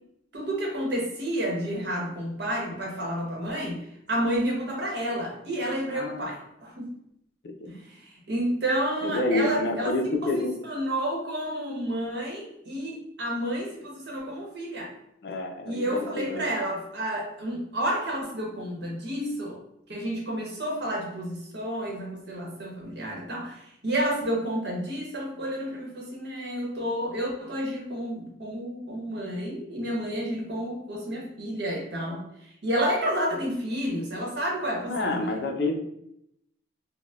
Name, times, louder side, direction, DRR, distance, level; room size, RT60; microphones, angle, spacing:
voice 1, 0.3-6.8 7.7-9.9 10.2-14.9 15.6-19.6 19.9-32.3 32.6-35.3, right 1 dB, 65° right, -2 dB, 0.9 m, -30 dB
voice 2, 5.9-6.3 7.4-7.7 9.0-10.6 15.2-16.5 34.9-35.8, left 2 dB, 60° left, 3 dB, 0.4 m, -28 dB
4.2 x 2.1 x 2.3 m, 0.77 s
head